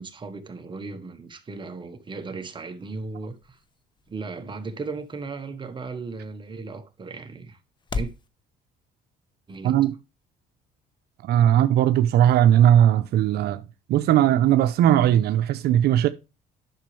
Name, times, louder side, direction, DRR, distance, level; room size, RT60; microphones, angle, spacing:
voice 1, 0.0-3.6 4.1-7.6 7.9-8.1 9.5-9.8, right 4 dB, 30° right, 1.3 m, -36 dB
sound 1, 2.0-8.3, left 3 dB, 25° left, 0.9 m, -40 dB
voice 2, 9.6-9.9 11.2-13.6 13.9-16.1, right 11 dB, 75° right, 0.7 m, -18 dB
10.5 x 6.2 x 3.3 m
cardioid pair, 110°, 17 cm